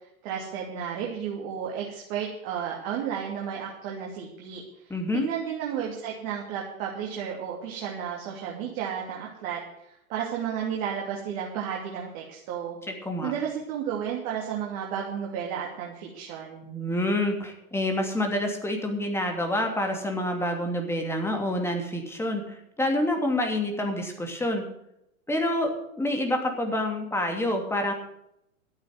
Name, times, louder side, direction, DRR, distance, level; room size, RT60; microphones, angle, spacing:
voice 1, 0.2-4.6 5.1-9.6 9.9-12.8 13.2-16.7, right 8 dB, 40° right, -2 dB, 3.1 m, -32 dB
voice 2, 4.9-5.2 12.9-13.3 16.6-24.6 25.3-27.9, left 1 dB, 5° left, 3 dB, 2.7 m, -27 dB
12.5 x 8.8 x 7.9 m, 0.79 s
hypercardioid pair, 110°, 42 cm